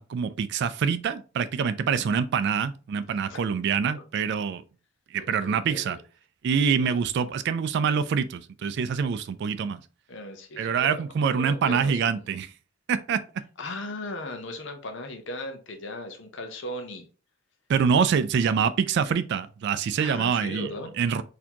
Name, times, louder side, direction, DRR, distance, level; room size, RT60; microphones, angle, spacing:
voice 1, 0.0-4.6 5.1-6.0 6.4-9.8 10.6-12.5 12.9-13.2 17.7-20.7 21.0-21.2, right 6 dB, 60° right, 0.3 m, -25 dB
voice 2, 5.2-6.0 6.8-7.0 10.1-12.3 13.6-17.1 20.0-20.9, left 1 dB, 65° left, 0.8 m, -38 dB
4.1 x 2.8 x 2.8 m
head